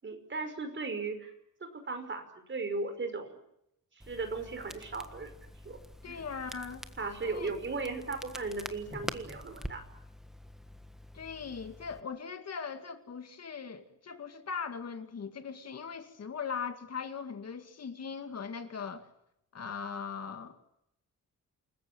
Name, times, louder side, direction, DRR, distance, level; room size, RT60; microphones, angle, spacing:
voice 1, 0.0-1.3 1.6-3.4 4.1-5.3 5.6-5.8 6.1-6.2 7.0-9.8, right 3 dB, 35° right, 5.5 m, -37 dB
Crackle, 4.0-12.0, equal, ahead, 1.5 m, -46 dB
voice 2, 6.0-6.9 7.3-7.5 11.1-19.1 19.5-20.6, left 6 dB, 50° left, 2.2 m, -40 dB
28.5 x 20.5 x 8.9 m
wide cardioid pair, 150°, 33 cm